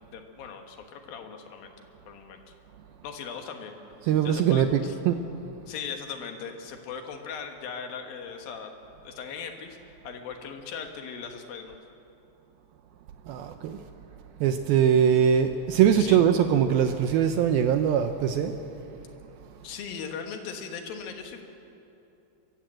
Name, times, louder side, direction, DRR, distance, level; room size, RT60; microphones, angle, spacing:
voice 1, 0.1-1.7 2.1-2.4 3.0-3.8 4.0-5.0 5.7-8.7 9.0-9.8 10.0-11.8 16.0-16.2 19.6-21.4, left 6 dB, 65° left, 4 dB, 2.8 m, -39 dB
voice 2, 4.1-4.8 5.1-5.2 13.3-13.8 14.4-18.5, right 8 dB, 80° right, 7 dB, 2.2 m, -22 dB
23.5 x 14.5 x 7.7 m, 2.9 s
omnidirectional pair, 5.0 m